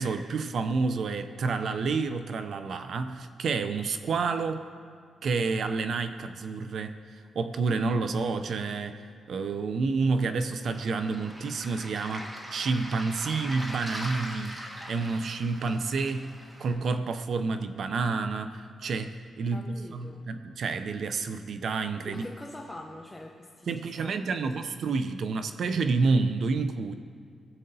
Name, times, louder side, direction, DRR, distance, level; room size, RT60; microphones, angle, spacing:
voice 1, 0.0-4.7 5.2-16.3 16.6-22.3 23.7-26.9, right 4 dB, 60° right, 9 dB, 0.4 m, -29 dB
Waves surf, 10.7-16.7, equal, 20° right, 1.6 m, -41 dB
voice 2, 19.5-20.2 22.1-24.7, left 1 dB, 10° left, -1 dB, 0.6 m, -44 dB
17.0 x 7.6 x 2.7 m, 2.3 s
cardioid pair, 130°, 0 cm